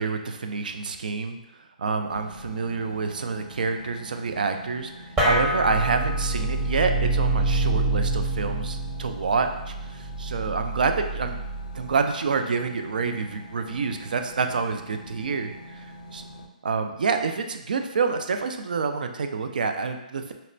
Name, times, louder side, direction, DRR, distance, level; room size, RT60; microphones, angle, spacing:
voice 1, 0.0-1.4 1.8-4.9 5.2-11.4 11.7-15.9 16.1-16.2 16.6-20.3, right 5 dB, 75° right, 6 dB, 0.3 m, -27 dB
sound 1, 2.1-16.5, equal, 70° left, 0.4 m, -44 dB
sound 2, 5.2-11.9, right 2 dB, 20° right, 0.7 m, -26 dB
4.0 x 2.2 x 2.5 m, 0.89 s
hypercardioid pair, 140°, 5 cm